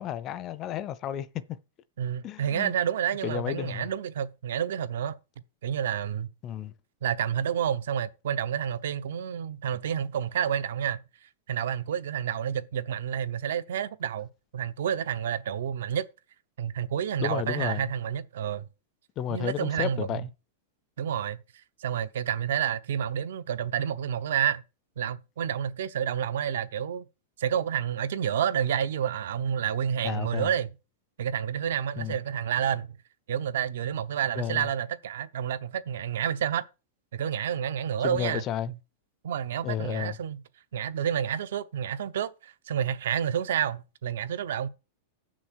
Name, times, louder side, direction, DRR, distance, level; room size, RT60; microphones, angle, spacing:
voice 1, 0.0-1.6 2.2-2.7 3.2-3.9 6.4-6.7 17.2-17.9 19.2-20.3 30.0-30.5 32.0-32.2 34.4-34.7 38.0-38.7 39.6-40.2, left 10 dB, 20° left, 0.4 m, -32 dB
voice 2, 2.0-5.1 5.6-6.3 7.0-11.0 11.5-16.1 16.6-18.6 19.3-20.3 21.0-21.4 21.8-24.6 25.0-27.0 27.4-30.7 31.2-33.0 33.3-36.6 37.1-38.8 39.2-40.4 40.7-44.7, right 9 dB, 70° right, 0.8 m, -29 dB
8.2 x 6.3 x 6.3 m
supercardioid pair, 175°, 0 cm